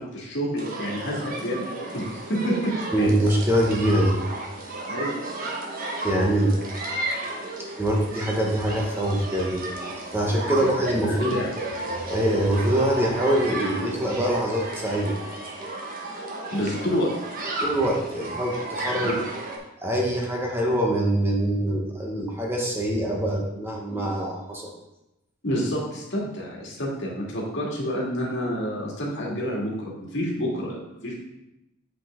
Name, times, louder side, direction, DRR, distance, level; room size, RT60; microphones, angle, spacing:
voice 1, 0.0-3.2 4.9-5.1 10.5-11.5 16.5-17.1 18.9-19.1 23.9-24.1 25.4-31.2, equal, 65° left, -3 dB, 2.1 m, -29 dB
sound 1, 0.6-19.6, right 2 dB, 45° right, 1.3 m, -33 dB
voice 2, 2.9-4.2 6.0-6.5 7.8-9.8 10.1-11.4 12.1-15.2 17.6-19.2 19.8-24.7, right 1 dB, 10° right, -2 dB, 1.1 m, -24 dB
7.7 x 5.5 x 3.6 m, 0.91 s
head